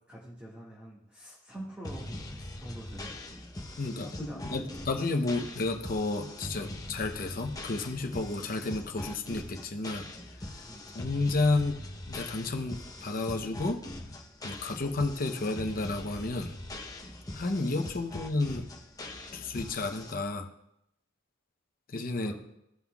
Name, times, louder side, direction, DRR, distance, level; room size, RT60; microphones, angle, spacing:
voice 1, 0.1-2.3 2.6-3.2 3.8-4.7 10.6-10.9 18.0-18.2 22.2-22.3, right 1 dB, 10° right, -7 dB, 1.8 m, -45 dB
sound 1, 1.8-20.1, left 1 dB, 20° left, 0.8 m, -42 dB
voice 2, 3.8-10.1 10.5-10.6 10.9-11.8 12.1-13.9 14.4-16.6 17.3-18.7 19.3-20.5 21.9-22.3, left 3 dB, 50° left, 4 dB, 0.8 m, -31 dB
15.5 x 5.6 x 2.3 m, 0.80 s
head